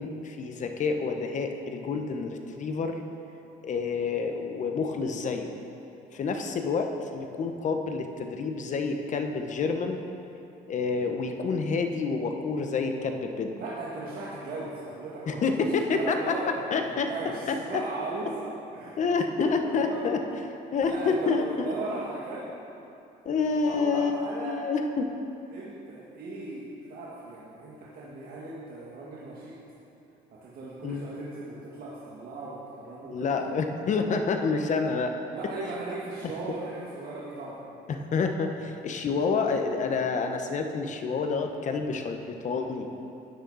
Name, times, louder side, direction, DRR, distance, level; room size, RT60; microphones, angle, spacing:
voice 1, 0.0-3.0 3.6-5.5 6.1-10.0 10.7-13.5 15.3-16.4 16.7-17.1 17.5-17.8 19.0-20.2 20.7-21.7 23.2-25.1 30.8-31.0 33.0-35.2 37.9-42.9, left 4 dB, 45° left, 5 dB, 1.0 m, -28 dB
voice 2, 13.6-19.3 19.6-20.1 20.8-22.5 23.4-24.6 25.5-29.6 30.3-33.5 35.3-37.6 38.6-38.7, right 2 dB, 60° right, -7 dB, 1.8 m, -38 dB
13.0 x 9.5 x 4.1 m, 2.9 s
cardioid pair, 110°, 17 cm